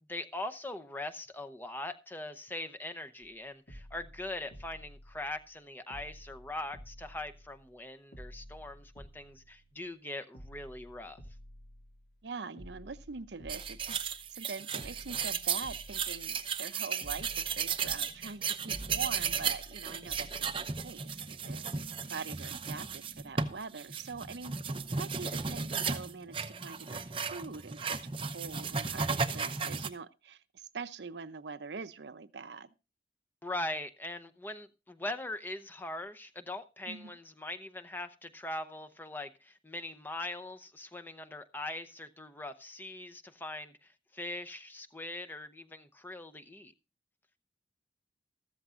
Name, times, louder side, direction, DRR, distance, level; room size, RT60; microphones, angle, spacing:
voice 1, 0.1-11.2 33.4-46.7, left 2 dB, 10° left, 0.7 m, -41 dB
sound 1, 3.2-3.4 3.7-5.6 5.9-7.8 8.1-10.0 10.3-12.3 12.6-14.5 14.8-16.7 17.0-21.1 21.5-21.6, equal, 55° left, 2.3 m, -51 dB
voice 2, 12.2-21.7 22.1-24.6 25.0-28.0 28.2-32.7 36.9-37.1, right 4 dB, 85° right, 0.7 m, -44 dB
sound 2, 13.5-29.9, right 6 dB, 30° right, 0.7 m, -35 dB
14.0 x 14.0 x 2.5 m
head